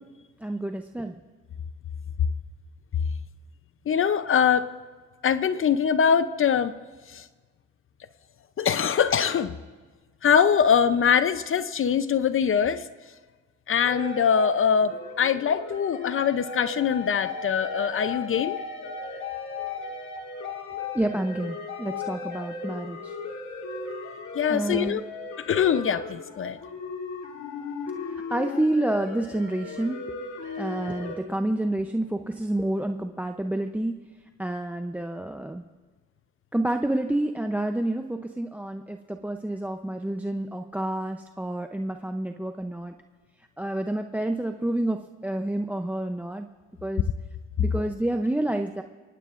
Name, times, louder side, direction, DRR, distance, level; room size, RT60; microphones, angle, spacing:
voice 1, 0.4-1.2 20.9-23.1 24.5-25.0 28.3-30.0 30.6-34.0 34.4-35.6 36.5-42.9 43.6-46.5 46.8-47.0 47.6-48.8, right 1 dB, 5° right, 7 dB, 0.6 m, -29 dB
voice 2, 3.9-4.7 5.2-6.7 7.1-7.2 8.6-9.5 10.2-12.8 13.7-18.6 24.4-25.0 25.5-26.6, left 7 dB, 45° left, 13 dB, 0.6 m, -23 dB
sound 1, 13.8-31.2, left 4 dB, 70° left, 2.6 m, -36 dB
23.5 x 18.5 x 2.5 m, 1.4 s
cardioid pair, 90°, 30 cm